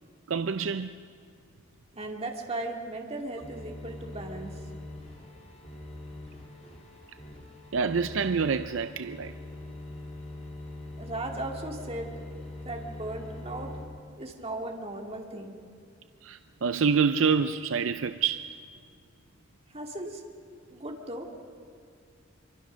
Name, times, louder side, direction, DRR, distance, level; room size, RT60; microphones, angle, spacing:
voice 1, 0.3-0.9 7.7-9.3 16.2-18.5, right 5 dB, 75° right, 0.5 m, -27 dB
voice 2, 1.9-4.5 11.0-12.1 12.5-13.7 14.2-15.6 19.7-20.2 20.7-21.3, right 2 dB, 30° right, 2.2 m, -37 dB
sound 1, 3.4-13.8, left 2 dB, 35° left, 3.0 m, -42 dB
24.5 x 24.0 x 6.3 m
head